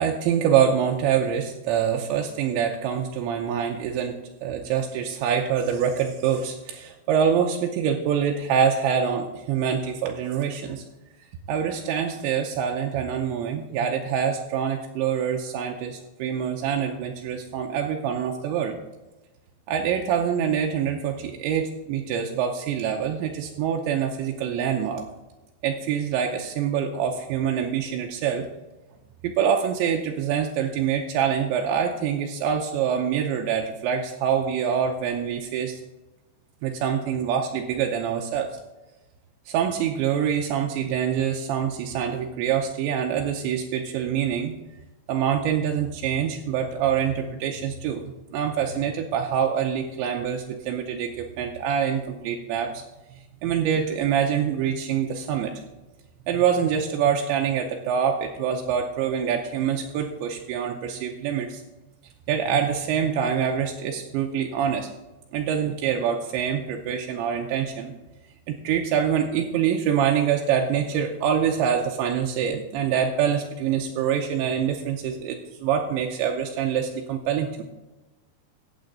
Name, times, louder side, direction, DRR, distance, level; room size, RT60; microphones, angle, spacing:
voice 1, 0.0-10.8 11.5-18.8 19.7-25.0 25.6-28.5 29.2-35.8 36.6-38.5 39.5-44.5 45.1-48.0 48.3-52.8 53.4-55.5 56.3-61.6 62.3-64.9 65.3-67.9 68.5-77.6, right 8 dB, 80° right, 2 dB, 2.9 m, -25 dB
15.5 x 8.2 x 4.0 m, 1.1 s
omnidirectional pair, 5.5 m